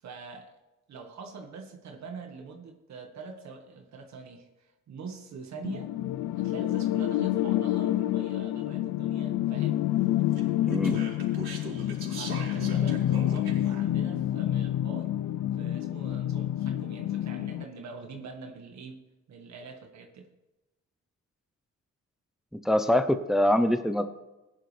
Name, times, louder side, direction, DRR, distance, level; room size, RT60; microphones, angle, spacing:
voice 1, 0.0-0.6 0.9-5.9 6.3-9.8 12.2-15.1 15.6-19.0 19.3-20.3, right 4 dB, 65° right, 3 dB, 1.8 m, -44 dB
sound 1, 5.6-17.6, left 13 dB, 75° left, 0.5 m, -28 dB
Speech, 10.3-13.8, right 4 dB, 40° right, 4.4 m, -41 dB
voice 2, 10.7-11.0 22.5-24.0, left 1 dB, ahead, 9 dB, 0.7 m, -24 dB
16.0 x 10.5 x 3.4 m, 1.0 s
cardioid pair, 90°, 30 cm